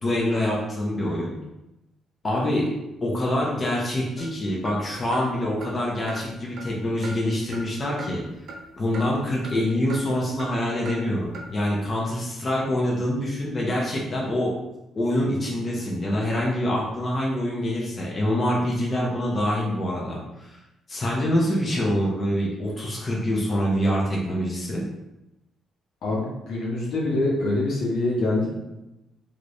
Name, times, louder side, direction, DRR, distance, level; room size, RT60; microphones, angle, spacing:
voice 1, 0.0-1.3 2.2-2.7 3.0-8.2 8.8-14.5 14.9-20.5 20.9-24.8, left 1 dB, 35° left, -4 dB, 0.7 m, -25 dB
sound 1, 4.2-4.3 4.6-4.8 5.1-5.3 5.6-5.7 6.1-6.2 6.6-6.7 7.0-7.2 7.5-7.7 8.0-8.1 8.5-8.6 8.9-9.0 9.4-9.6 9.9-10.0 10.4-10.5 10.8-11.0 11.3-11.5, right 3 dB, 70° right, 0.5 m, -37 dB
voice 2, 26.0-28.5, left 2 dB, 75° left, -4 dB, 1.0 m, -25 dB
3.2 x 2.6 x 3.1 m, 0.95 s
cardioid pair, 90°, 0 cm